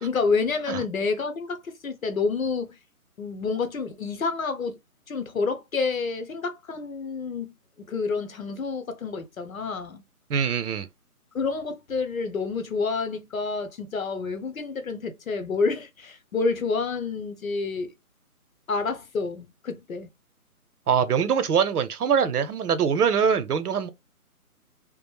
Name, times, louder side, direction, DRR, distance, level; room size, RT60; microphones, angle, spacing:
voice 1, 0.0-2.7 3.2-4.8 5.1-10.0 11.3-17.9 18.7-20.1, left 4 dB, 65° left, 0.7 m, -28 dB
voice 2, 10.3-10.9 20.9-23.9, right 7 dB, 80° right, 0.6 m, -23 dB
2.3 x 2.0 x 3.0 m
hypercardioid pair, 175°, 45 cm